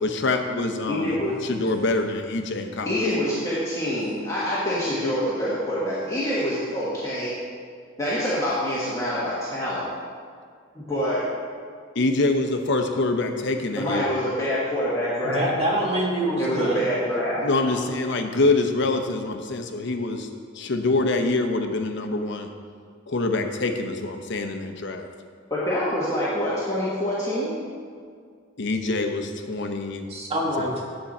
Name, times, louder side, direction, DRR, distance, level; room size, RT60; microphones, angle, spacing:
voice 1, 0.0-3.0 11.9-14.1 17.4-20.3 20.5-22.5 23.1-25.1 28.6-30.1 30.6-30.8, left 2 dB, 60° left, 5 dB, 0.8 m, -25 dB
voice 2, 0.9-1.4 2.8-7.4 8.0-9.8 10.7-11.2 13.7-15.5 16.4-17.4 25.5-27.6, equal, 15° left, -9 dB, 1.6 m, -26 dB
voice 3, 15.2-17.1 17.6-17.9 30.1-30.8, right 1 dB, 30° right, -3 dB, 1.7 m, -26 dB
9.7 x 7.7 x 4.3 m, 2.1 s
head